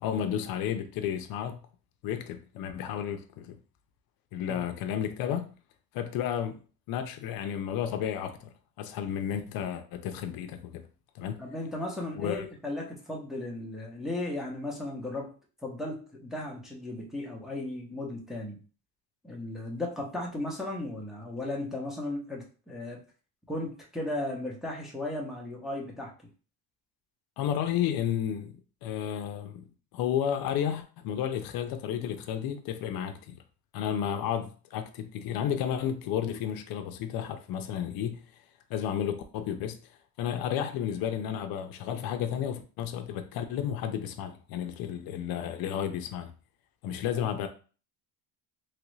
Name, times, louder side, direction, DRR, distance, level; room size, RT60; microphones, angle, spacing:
voice 1, 0.0-1.6 2.0-3.6 4.3-5.6 5.9-6.6 6.9-8.5 8.8-10.9 11.1-11.4 12.2-12.4 27.4-28.5 28.8-29.7 29.9-33.4 33.7-38.2 38.7-39.8 40.2-46.3 46.8-47.5, left 9 dB, 65° left, 0.5 m, -32 dB
voice 2, 11.4-15.3 15.6-18.6 19.2-23.0 23.5-26.1 47.2-47.3, left 1 dB, ahead, 0.5 m, -36 dB
3.1 x 2.4 x 3.0 m
cardioid pair, 145°, 39 cm